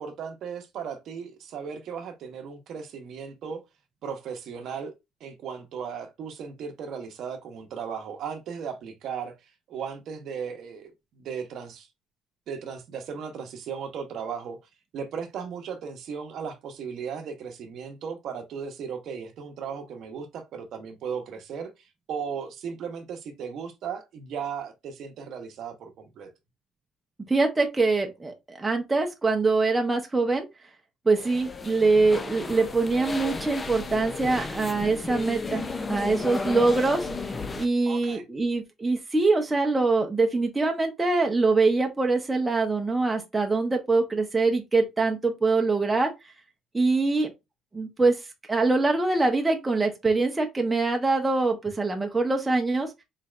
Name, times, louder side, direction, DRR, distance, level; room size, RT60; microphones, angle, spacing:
voice 1, 0.0-3.6 4.0-4.9 5.2-9.4 9.7-11.9 12.5-14.6 14.9-21.7 22.1-26.3 37.9-38.2, right 6 dB, 55° right, 0.8 m, -36 dB
voice 2, 27.3-30.5 31.1-37.1 37.6-46.1 46.7-47.3 47.7-48.2 48.5-52.9, right 3 dB, 10° right, 0.7 m, -24 dB
sound 1, 31.1-37.7, left 3 dB, 20° left, 0.4 m, -34 dB
4.1 x 3.2 x 2.4 m
cardioid pair, 150°, 0 cm